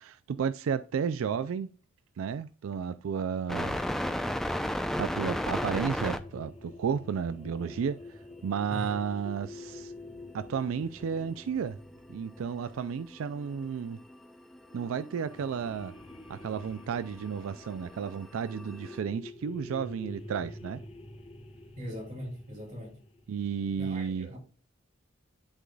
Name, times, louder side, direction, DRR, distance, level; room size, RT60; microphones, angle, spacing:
voice 1, 0.0-1.7 2.2-3.8 5.0-9.9 10.3-11.8 12.1-14.0 14.7-15.9 16.3-20.8 23.3-24.3, right 6 dB, 90° right, 0.4 m, -33 dB
sound 1, 3.5-6.2 9.7-9.8 10.0-10.1 10.3-11.6 11.9-19.0, equal, ahead, 0.4 m, -34 dB
sound 2, 4.9-14.0 14.7-23.4, left 2 dB, 30° left, 1.0 m, -48 dB
voice 2, 21.8-23.0 23.8-24.4, equal, 40° right, 3.0 m, -40 dB
11.0 x 3.9 x 2.2 m
head